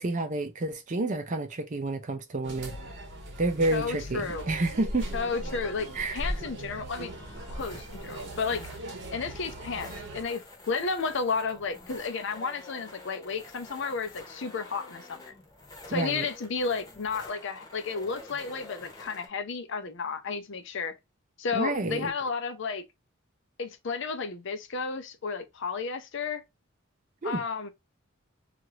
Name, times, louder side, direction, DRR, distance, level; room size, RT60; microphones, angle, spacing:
voice 1, 0.0-2.7 3.4-5.1 5.9-6.2 15.9-16.3 21.5-22.1 27.2-27.4, right 2 dB, 35° right, 0.5 m, -29 dB
sound 1, 2.4-10.2, right 1 dB, 55° right, 0.8 m, -38 dB
voice 2, 3.7-4.4 5.1-7.1 7.5-8.7 9.1-15.3 15.9-20.9 21.4-22.8 23.6-26.4 27.2-27.7, left 5 dB, 60° left, 0.5 m, -32 dB
sound 2, 7.0-19.3, left 2 dB, 20° left, 0.9 m, -48 dB
2.8 x 2.4 x 3.0 m
head